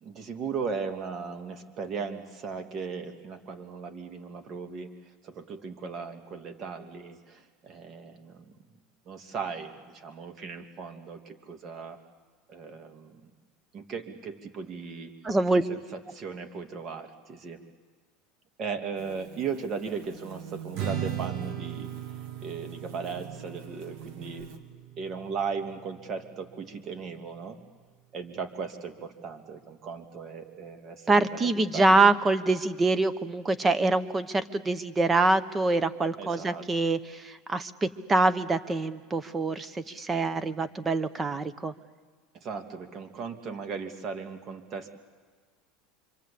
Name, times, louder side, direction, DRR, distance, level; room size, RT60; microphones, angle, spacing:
voice 1, 0.0-4.9 5.2-8.5 9.1-12.0 12.5-13.2 13.7-15.1 15.5-17.6 18.6-22.2 22.4-24.5 25.0-27.6 28.1-31.2 31.5-32.1 36.2-36.6 42.3-44.9, right 5 dB, 35° right, 6 dB, 2.5 m, -37 dB
voice 2, 15.2-15.6 31.1-41.7, right 2 dB, 20° right, 13 dB, 1.2 m, -25 dB
sound 1, 19.0-24.6, right 8 dB, 75° right, 2.9 m, -45 dB
Strum, 20.7-27.0, right 10 dB, 60° right, 3.5 m, -38 dB
26.5 x 25.5 x 8.6 m, 1.5 s
supercardioid pair, 135°, 0 cm